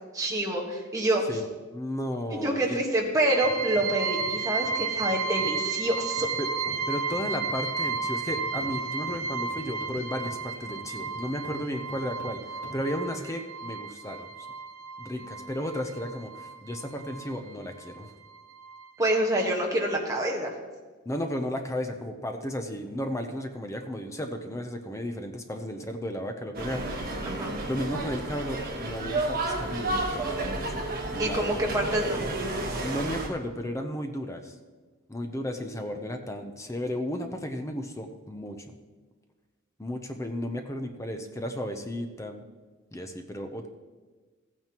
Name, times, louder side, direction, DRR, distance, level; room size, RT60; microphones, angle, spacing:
voice 1, 0.1-1.2 2.3-6.3 19.0-20.5 27.2-27.5 31.2-32.2, right 1 dB, 15° right, -1 dB, 1.4 m, -27 dB
voice 2, 1.7-2.9 6.4-6.5 6.9-14.3 15.0-18.1 21.1-27.2 27.6-31.7 32.8-34.6 35.1-38.6 39.8-42.4 42.9-43.7, equal, 15° left, 5 dB, 0.6 m, -34 dB
sound 1, 3.0-6.4 6.6-13.3, equal, 75° left, 2.5 m, -46 dB
sound 2, 3.2-17.5 17.8-18.9 19.2-19.3 19.7-19.8, right 4 dB, 80° right, 0.7 m, -33 dB
sound 3, 26.5-33.3, right 2 dB, 45° right, 1.3 m, -31 dB
14.5 x 9.1 x 3.0 m, 1.4 s
head